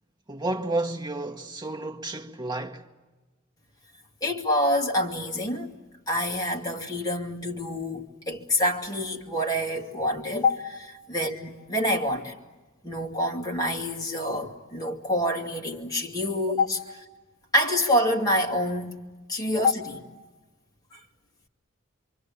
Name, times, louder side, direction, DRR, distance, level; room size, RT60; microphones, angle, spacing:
voice 1, 0.3-2.9, right 2 dB, 20° right, 1.4 m, -31 dB
voice 2, 4.2-5.7 6.1-12.3 12.8-17.0 17.5-19.0 19.3-20.1 20.9-21.0, left 1 dB, 20° left, 2.5 m, -27 dB
27.0 x 24.0 x 8.5 m
head